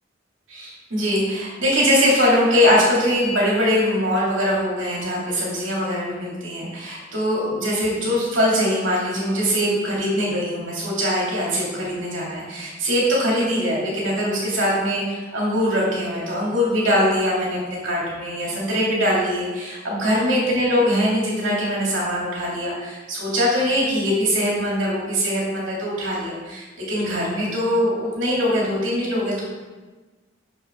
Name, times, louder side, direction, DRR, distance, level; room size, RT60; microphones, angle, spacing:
voice 1, 0.5-29.4, equal, 85° right, -5 dB, 2.5 m, -22 dB
6.8 x 6.3 x 3.7 m, 1.3 s
head